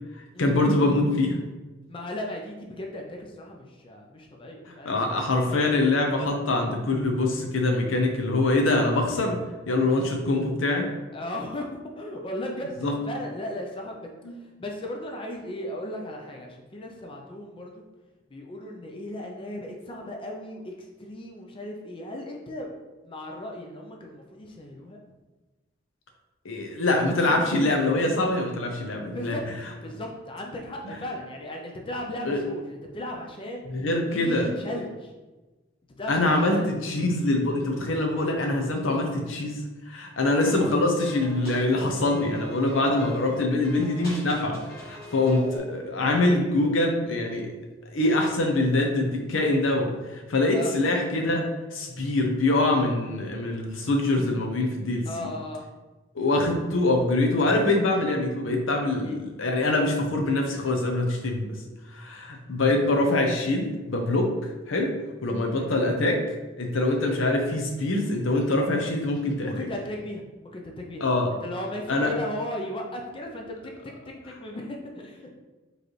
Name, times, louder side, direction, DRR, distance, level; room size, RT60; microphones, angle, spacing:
voice 1, 0.4-1.4 4.8-9.4 9.7-10.8 12.8-12.9 14.2-14.4 26.4-29.4 32.2-32.4 33.7-34.5 36.1-39.6 39.9-47.5 47.9-51.4 51.7-55.3 56.1-61.5 61.9-64.3 64.7-64.9 65.2-66.1 66.6-69.7 71.0-71.3 71.9-72.1, left 2 dB, 75° left, 2 dB, 0.7 m, -24 dB
voice 2, 1.9-5.0 5.4-5.8 11.1-11.7 12.0-14.0 14.4-17.8 18.3-22.7 23.0-25.0 29.1-29.4 29.8-33.7 34.1-35.1 36.0-36.7 50.5-50.7 55.1-55.7 59.0-59.2 65.5-65.7 69.4-73.7 74.1-75.3, left 1 dB, 25° left, 0 dB, 0.5 m, -36 dB
sound 1, 40.4-45.6, left 1 dB, 50° left, 1.4 m, -41 dB
4.7 x 3.2 x 3.1 m, 1.2 s
head